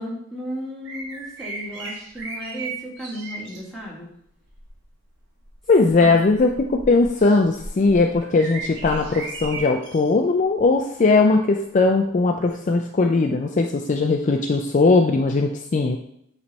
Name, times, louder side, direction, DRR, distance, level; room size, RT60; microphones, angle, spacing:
voice 1, 0.0-4.1 6.0-6.2, equal, ahead, -7 dB, 1.9 m, -34 dB
sound 1, 0.9-3.6 4.4-4.8 5.4-10.1 10.6-10.8 12.6-12.7, right 3 dB, 60° right, 1.4 m, -36 dB
voice 2, 5.7-16.0, left 3 dB, 40° left, 3 dB, 0.4 m, -19 dB
8.8 x 3.3 x 4.1 m, 0.74 s
head